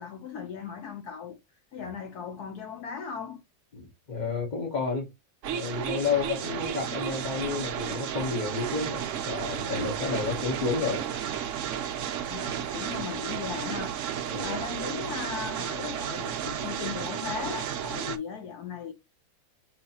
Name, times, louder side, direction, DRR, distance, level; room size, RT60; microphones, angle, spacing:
voice 1, 0.0-1.4 1.7-3.4 12.3-18.9, left 6 dB, 65° left, 1.1 m, -37 dB
voice 2, 3.7-5.1 5.5-11.1 14.3-14.6, left 4 dB, 30° left, 0.9 m, -31 dB
sound 1, 5.4-18.2, right 9 dB, 85° right, 0.6 m, -33 dB
5.7 x 3.0 x 2.8 m
omnidirectional pair, 2.0 m